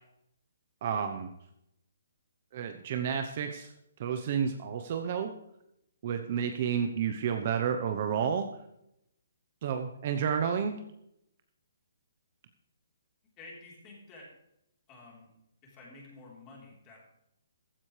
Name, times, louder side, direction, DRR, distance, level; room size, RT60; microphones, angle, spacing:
voice 1, 0.8-1.3 2.5-3.7 4.0-5.3 6.0-8.5 9.6-10.8, right 7 dB, 30° right, 6 dB, 0.9 m, -30 dB
voice 2, 13.4-14.3 14.9-15.3 15.6-17.1, left 2 dB, 15° left, -3 dB, 3.8 m, -50 dB
15.0 x 15.0 x 3.3 m, 0.79 s
hypercardioid pair, 175°, 0 cm